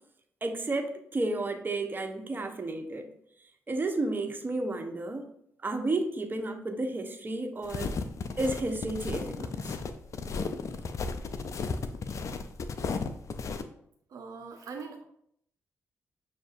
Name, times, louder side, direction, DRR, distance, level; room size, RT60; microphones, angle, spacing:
voice 1, 0.4-3.1 3.7-5.3 5.6-8.0 8.4-9.8, right 2 dB, 30° right, 5 dB, 0.7 m, -32 dB
sound 1, 7.6-13.6, left 4 dB, 55° left, 0.4 m, -34 dB
voice 2, 14.1-15.0, right 5 dB, 65° right, 3 dB, 0.5 m, -41 dB
6.3 x 2.5 x 2.5 m, 0.70 s
supercardioid pair, 45°, 6 cm